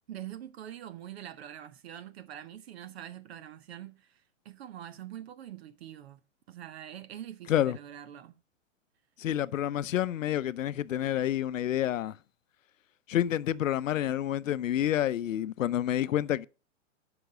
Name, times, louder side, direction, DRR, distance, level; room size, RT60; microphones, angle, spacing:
voice 1, 0.1-6.2 6.5-8.4, right 11 dB, 55° right, 0.8 m, -44 dB
voice 2, 9.2-12.2 13.1-16.5, left 11 dB, 85° left, 0.7 m, -28 dB
11.5 x 6.0 x 4.9 m
hypercardioid pair, 150°, 38 cm